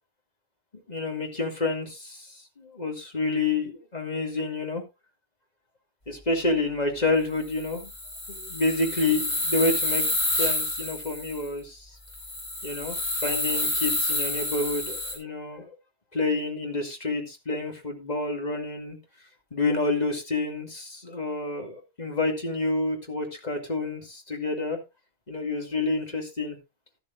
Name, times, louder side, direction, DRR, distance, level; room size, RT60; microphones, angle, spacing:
voice 1, 0.9-4.8 6.1-7.9 8.3-11.9 12.6-13.0 13.2-15.7 16.1-19.0 19.5-24.8 25.3-26.6, left 3 dB, 35° left, 3 dB, 2.5 m, -29 dB
sound 1, 7.5-11.4 12.1-15.1, left 1 dB, 65° left, 5.6 m, -29 dB
13.0 x 12.0 x 2.6 m, 0.24 s
omnidirectional pair, 1.2 m